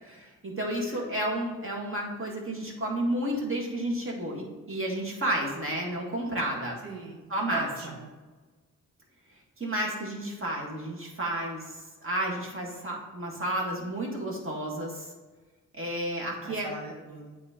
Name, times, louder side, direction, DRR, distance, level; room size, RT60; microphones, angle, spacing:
voice 1, 0.0-6.8 7.3-7.9 9.6-15.1 15.8-16.7, right 1 dB, 40° right, -2 dB, 1.9 m, -31 dB
voice 2, 6.8-8.1 16.4-17.4, right 4 dB, 85° right, -1 dB, 1.4 m, -40 dB
8.6 x 3.2 x 3.7 m, 1.3 s
cardioid pair, 50°, 34 cm